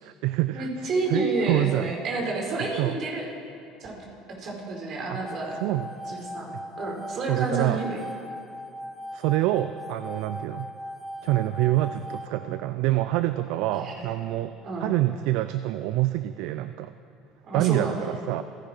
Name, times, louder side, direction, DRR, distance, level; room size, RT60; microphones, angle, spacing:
voice 1, 0.0-2.0 2.8-3.0 5.1-5.2 5.6-6.0 7.3-7.8 9.1-10.7 11.2-16.9 17.5-18.4, right 16 dB, 70° right, 12 dB, 0.4 m, -26 dB
voice 2, 0.5-3.2 3.8-4.0 4.4-5.5 6.1-6.5 6.8-8.0 13.7-14.1 14.6-14.9 17.5-18.1, right 3 dB, 50° right, 0 dB, 4.6 m, -29 dB
sound 1, 5.2-12.3, left 1 dB, 10° left, 1.4 m, -39 dB
28.0 x 11.5 x 4.5 m, 2.5 s
hypercardioid pair, 75°, 0 cm